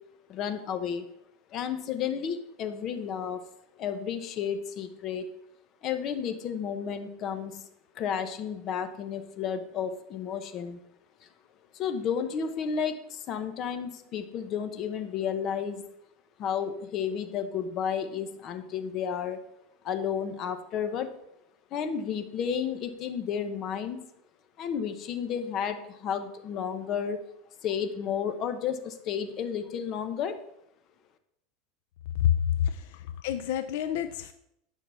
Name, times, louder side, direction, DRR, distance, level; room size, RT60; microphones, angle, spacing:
voice 1, 0.3-1.0 1.5-3.4 3.8-5.2 5.8-7.6 7.9-10.8 11.7-15.8 16.4-19.4 19.8-21.1 21.7-24.0 24.6-27.2 27.6-30.4, left 7 dB, 35° left, 8 dB, 1.0 m, -32 dB
voice 2, 32.2-34.3, left 10 dB, 70° left, 10 dB, 0.6 m, -28 dB
9.5 x 5.9 x 5.7 m, 0.77 s
supercardioid pair, 160°, 0 cm